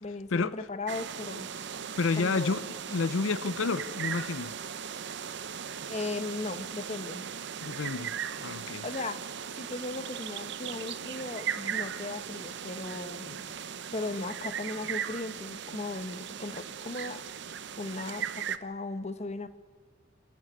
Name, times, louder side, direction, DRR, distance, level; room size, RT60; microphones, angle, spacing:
voice 1, 0.0-1.5 2.2-2.6 5.9-7.2 8.8-9.2 9.5-13.5 13.9-17.2 17.8-19.5, left 2 dB, 35° left, 0.9 m, -37 dB
sound 1, 0.9-18.6, right 8 dB, 55° right, 0.8 m, -38 dB
voice 2, 2.0-4.5 7.6-8.1 8.4-8.8, left 4 dB, 65° left, 0.6 m, -30 dB
28.0 x 11.0 x 9.6 m
head